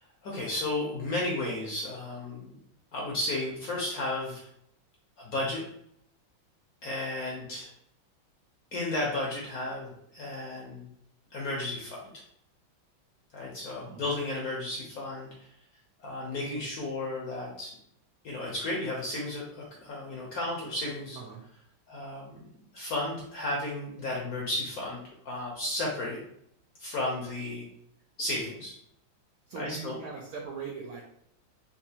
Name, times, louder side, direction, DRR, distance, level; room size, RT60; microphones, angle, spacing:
voice 1, 0.2-2.5 2.9-4.4 5.2-5.6 6.8-7.7 8.7-10.9 11.3-12.2 13.3-15.3 16.0-17.8 18.2-21.2 21.9-22.3 22.7-26.2 26.8-27.7 28.2-28.8 29.6-30.0, left 2 dB, 65° left, -3 dB, 0.9 m, -33 dB
voice 2, 29.5-31.0, right 5 dB, 80° right, -2 dB, 0.8 m, -40 dB
4.1 x 2.4 x 2.7 m, 0.72 s
omnidirectional pair, 2.2 m